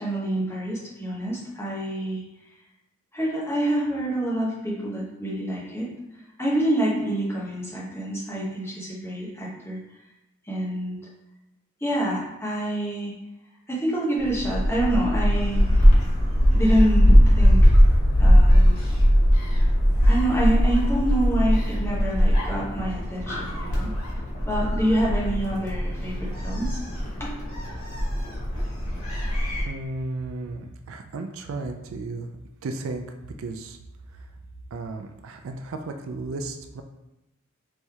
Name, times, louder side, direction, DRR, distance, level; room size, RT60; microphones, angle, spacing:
voice 1, 0.0-2.2 3.1-5.9 6.4-9.8 10.5-11.0 11.8-13.1 13.7-15.9 16.5-17.7 18.2-18.8 20.1-23.9 24.5-26.8 27.2-27.3, right 1 dB, 10° left, -6 dB, 1.0 m, -27 dB
Gull seagull, 14.2-29.6, equal, 75° left, 1.5 m, -20 dB
voice 2, 29.6-32.3 32.6-33.0 33.4-33.8 34.7-36.8, right 3 dB, 70° right, 6 dB, 0.4 m, -34 dB
4.1 x 3.2 x 3.5 m, 0.93 s
head